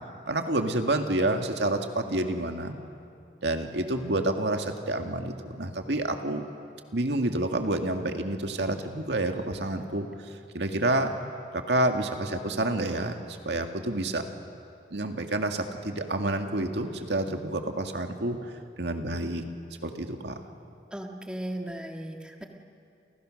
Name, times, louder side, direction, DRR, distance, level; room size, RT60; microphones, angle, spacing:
voice 1, 0.3-2.8 3.4-6.4 6.9-10.1 10.5-11.1 11.5-14.3 14.9-18.4 18.8-19.4 19.8-20.4, right 2 dB, 85° right, 5 dB, 2.1 m, -28 dB
voice 2, 20.9-22.4, right 1 dB, 5° right, 1 dB, 1.9 m, -36 dB
29.5 x 29.5 x 6.5 m, 2.5 s
head